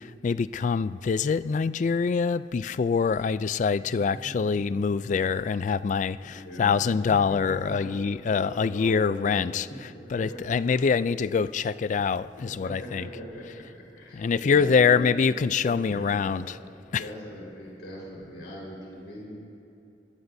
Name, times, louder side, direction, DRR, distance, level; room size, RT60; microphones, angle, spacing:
voice 1, 0.0-13.1 13.5-13.6 14.1-16.5 16.9-17.1, left 5 dB, 45° left, 0.3 m, -25 dB
voice 2, 6.2-6.8 7.3-7.9 8.3-9.4 9.9-10.9 12.4-13.4 13.9-16.4 17.0-19.3, equal, 70° left, 4.5 m, -40 dB
24.0 x 20.5 x 2.7 m
head